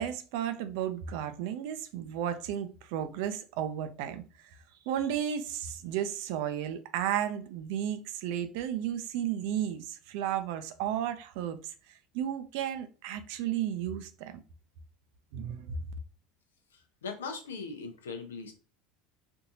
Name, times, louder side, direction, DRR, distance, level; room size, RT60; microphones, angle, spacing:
voice 1, 0.0-4.5 4.9-14.3 15.3-15.8, right 10 dB, 60° right, 0.5 m, -33 dB
voice 2, 16.7-18.5, left 4 dB, 80° left, 0.7 m, -40 dB
4.4 x 2.7 x 2.7 m
figure-of-eight pair, 75°, 0 cm